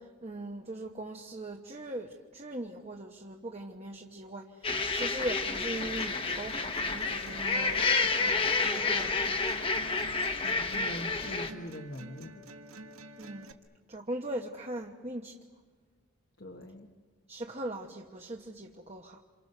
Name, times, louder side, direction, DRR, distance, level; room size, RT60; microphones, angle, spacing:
voice 1, 0.0-9.6 13.2-13.5 13.9-15.4 17.3-19.2, right 1 dB, 30° right, 2 dB, 1.1 m, -40 dB
sound 1, 4.6-11.5, left 4 dB, 25° left, 1.3 m, -30 dB
sound 2, 5.5-13.5, right 2 dB, 80° right, 1.7 m, -48 dB
voice 2, 10.2-12.4 16.4-16.9, equal, 50° left, 3 dB, 1.3 m, -43 dB
28.5 x 28.0 x 6.8 m, 1.5 s
head